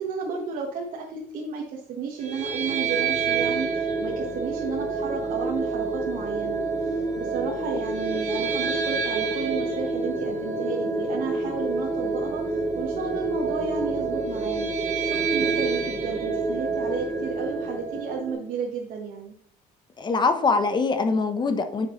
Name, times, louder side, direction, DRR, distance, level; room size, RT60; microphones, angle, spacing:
voice 1, 0.0-14.7 15.0-19.3, right 5 dB, 60° right, -1 dB, 1.3 m, -33 dB
sound 1, 2.2-18.3, right 3 dB, 45° right, 2.6 m, -27 dB
voice 2, 20.0-21.9, left 4 dB, 30° left, 8 dB, 0.8 m, -23 dB
9.1 x 6.4 x 3.1 m, 0.66 s
cardioid pair, 135°, 15 cm